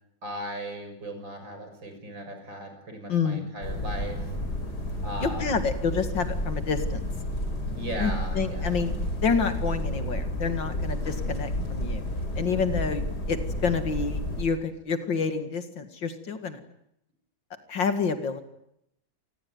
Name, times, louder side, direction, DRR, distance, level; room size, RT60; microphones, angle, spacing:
voice 1, 0.2-4.3 5.0-5.6 7.7-8.8, equal, 85° right, 6 dB, 7.0 m, -37 dB
voice 2, 3.1-3.5 5.2-7.0 8.0-8.9 9.2-12.0 12.4-16.6 17.7-18.4, left 5 dB, 80° left, 9 dB, 2.9 m, -28 dB
sound 1, 3.6-14.4, left 1 dB, 60° left, 5.4 m, -31 dB
26.5 x 20.0 x 9.6 m, 0.79 s
omnidirectional pair, 2.0 m